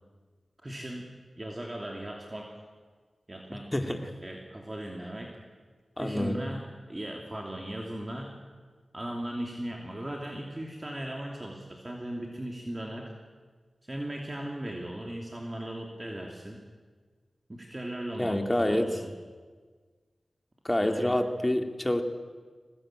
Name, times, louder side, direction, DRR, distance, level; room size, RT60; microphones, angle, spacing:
voice 1, 0.6-1.1 1.4-2.6 3.3-5.4 6.0-8.4 8.9-13.1 13.8-16.6 17.5-19.1 20.8-21.2, right 1 dB, 30° right, 0 dB, 2.9 m, -38 dB
voice 2, 3.7-4.1 6.0-6.3 18.2-18.9 20.6-22.0, left 1 dB, 20° left, 5 dB, 2.5 m, -27 dB
22.0 x 19.0 x 9.0 m, 1.5 s
cardioid pair, 55°, 0 cm